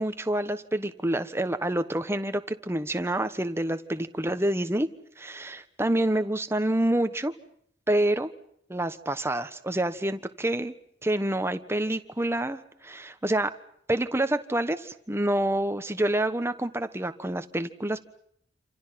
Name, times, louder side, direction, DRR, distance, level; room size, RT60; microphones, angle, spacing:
voice 1, 0.0-4.9 5.2-7.3 7.9-8.3 8.7-10.7 11.0-13.5 13.9-18.0, right 1 dB, 15° right, 10 dB, 1.3 m, -27 dB
27.5 x 27.5 x 6.0 m, 0.68 s
head